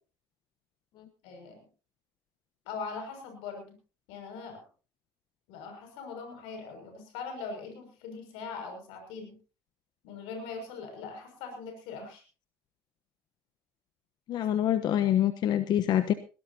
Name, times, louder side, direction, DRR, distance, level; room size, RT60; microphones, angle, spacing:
voice 1, 1.2-1.6 2.7-3.7 4.1-4.6 5.5-9.4 10.0-12.2, left 4 dB, 85° left, 5 dB, 6.4 m, -41 dB
voice 2, 14.3-16.1, left 11 dB, 55° left, 11 dB, 1.0 m, -26 dB
22.0 x 18.0 x 2.8 m, 0.35 s
cardioid pair, 135°, 9 cm